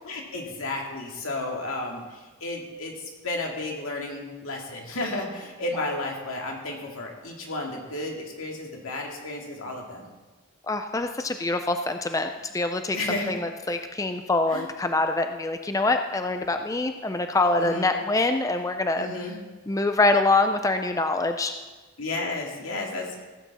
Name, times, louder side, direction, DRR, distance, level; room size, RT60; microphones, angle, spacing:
voice 1, 0.0-10.1 12.9-13.4 14.5-14.7 17.6-17.9 19.0-19.4 22.0-23.2, left 2 dB, 80° left, 0 dB, 2.2 m, -32 dB
voice 2, 10.7-19.1 19.7-21.5, left 2 dB, 15° left, 7 dB, 0.4 m, -25 dB
16.0 x 8.4 x 4.2 m, 1.3 s
head